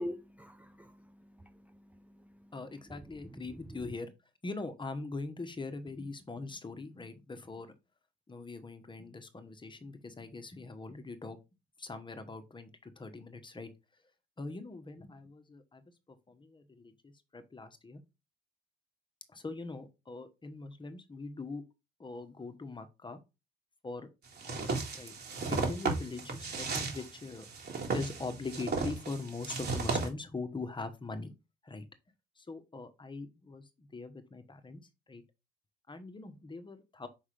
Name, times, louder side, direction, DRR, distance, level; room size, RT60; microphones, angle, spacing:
voice 1, 0.0-2.5, left 1 dB, 5° right, 0.5 m, -45 dB
voice 2, 2.5-4.1 4.4-7.7 8.3-11.4 11.8-13.7 14.4-15.8 16.3-18.0 19.3-21.6 22.0-23.2 23.8-24.1 24.4-25.1 25.5-27.5 27.9-31.3 31.6-31.9 32.4-34.8 35.1-35.2 35.9-37.1, left 3 dB, 25° left, 1.2 m, -42 dB
sound 1, 24.4-30.1, right 4 dB, 55° right, 2.1 m, -34 dB
5.6 x 3.6 x 4.9 m
cardioid pair, 90°, 20 cm